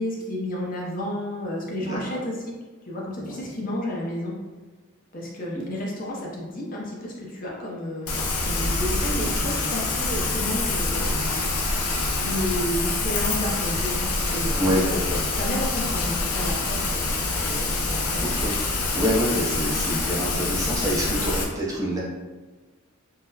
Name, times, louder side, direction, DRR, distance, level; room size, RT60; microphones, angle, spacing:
voice 1, 0.0-2.5 2.9-4.4 5.1-14.9 15.4-18.2, left 1 dB, 40° left, -3 dB, 0.5 m, -32 dB
voice 2, 3.2-3.5 5.6-5.7 14.6-15.2 18.2-18.5 18.9-22.0, equal, 15° right, -5 dB, 0.4 m, -26 dB
Rain, 8.1-21.4, left 3 dB, 90° left, 0.5 m, -26 dB
3.8 x 2.0 x 2.7 m, 1.3 s
head